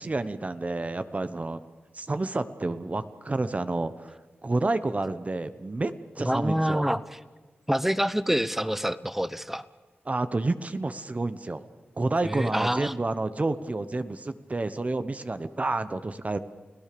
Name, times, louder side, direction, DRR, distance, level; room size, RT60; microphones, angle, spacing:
voice 1, 0.0-1.6 1.9-4.2 4.4-6.9 10.0-11.6 12.0-16.4, right 2 dB, 35° right, 11 dB, 1.1 m, -29 dB
voice 2, 6.3-7.0 7.7-9.7 12.2-12.9, equal, 5° right, 15 dB, 1.0 m, -26 dB
29.5 x 17.0 x 6.9 m, 1.3 s
cardioid pair, 70°, 4 cm